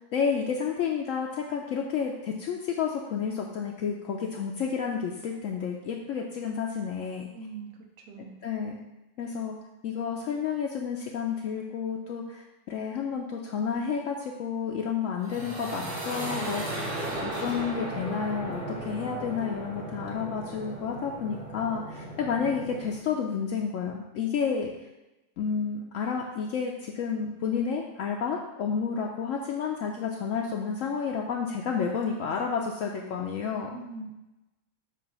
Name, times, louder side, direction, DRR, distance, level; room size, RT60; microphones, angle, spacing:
voice 1, 0.1-7.3 8.4-8.8 9.2-9.6 9.8-16.9 17.1-24.7 25.4-33.8, left 6 dB, 70° left, 0 dB, 0.9 m, -30 dB
voice 2, 7.3-8.4 33.7-34.1, right 4 dB, 90° right, 2 dB, 1.2 m, -42 dB
sound 1, 15.2-23.0, right 1 dB, 25° right, 1.4 m, -36 dB
7.4 x 2.5 x 5.4 m, 0.99 s
omnidirectional pair, 1.5 m